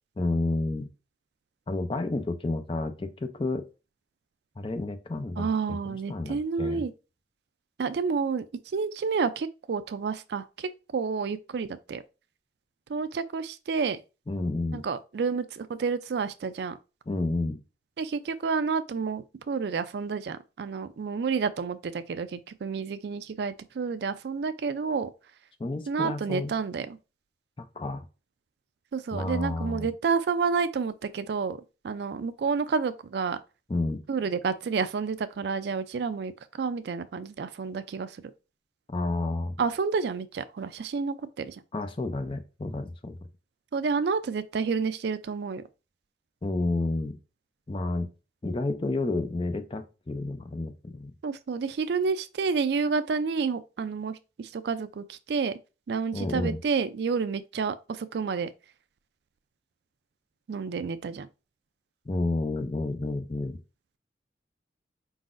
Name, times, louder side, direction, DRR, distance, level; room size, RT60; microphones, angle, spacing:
voice 1, 0.2-0.9 1.7-3.6 4.6-6.8 14.3-14.8 17.1-17.6 25.6-26.6 27.6-28.1 29.1-29.9 33.7-34.0 38.9-39.6 41.7-43.2 46.4-47.2 47.7-48.1 48.4-51.1 56.1-56.6 62.1-63.6, left 2 dB, 30° left, 0.4 m, -30 dB
voice 2, 5.4-6.9 7.8-8.4 8.7-12.0 12.9-14.0 14.7-16.8 18.0-25.1 25.9-27.0 28.9-31.6 31.8-33.4 34.1-38.2 39.6-41.6 43.7-45.6 51.2-55.5 55.9-58.5 60.5-61.3, right 5 dB, 65° right, 0.3 m, -29 dB
4.7 x 3.9 x 2.5 m
head